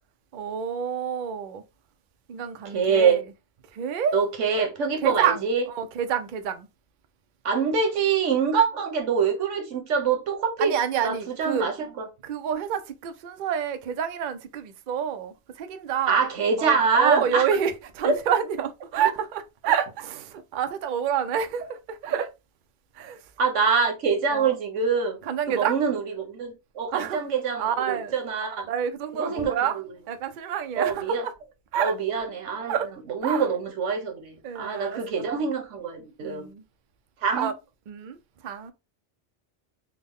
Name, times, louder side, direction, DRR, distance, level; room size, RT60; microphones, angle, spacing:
voice 1, 0.3-1.6 2.3-3.2 3.7-4.2 5.0-6.7 10.6-11.7 12.2-16.2 16.6-22.3 23.0-23.2 24.3-24.6 25.2-25.8 26.9-27.2 27.6-28.2 28.7-29.8 30.1-31.3 31.7-31.9 32.7-32.9 33.2-33.5 34.4-35.3 36.2-36.6 37.3-37.5 37.9-38.2 38.4-38.7, right 8 dB, 60° right, 0.5 m, -28 dB
voice 2, 2.7-3.2 4.1-5.6 7.4-10.7 11.0-11.1 11.4-12.0 16.1-17.4 18.0-18.1 23.4-25.2 25.6-28.7 29.1-29.8 30.8-31.3 31.8-32.7 33.1-36.5 37.2-37.5, right 5 dB, 90° right, 1.2 m, -25 dB
3.6 x 2.1 x 3.5 m
omnidirectional pair, 1.2 m